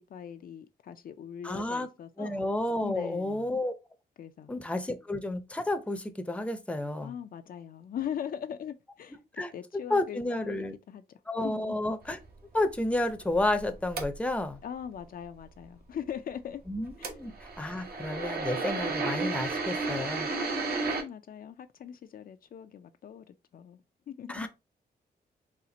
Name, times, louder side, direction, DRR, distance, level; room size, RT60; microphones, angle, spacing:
voice 1, 0.1-2.3 2.8-3.5 4.2-4.5 7.0-9.2 9.5-11.0 11.4-11.8 14.6-16.6 17.0-17.1 20.3-23.8 24.1-24.5, left 9 dB, 60° left, 0.4 m, -40 dB
voice 2, 1.4-1.9 2.2-3.7 4.5-7.1 9.4-10.7 11.3-12.2 12.5-14.6 16.7-20.3 24.3-24.5, left 1 dB, 5° left, 0.6 m, -31 dB
sound 1, 12.0-14.5 16.9-21.0, right 3 dB, 65° right, 1.1 m, -33 dB
4.2 x 2.4 x 3.8 m
wide cardioid pair, 115°, 17 cm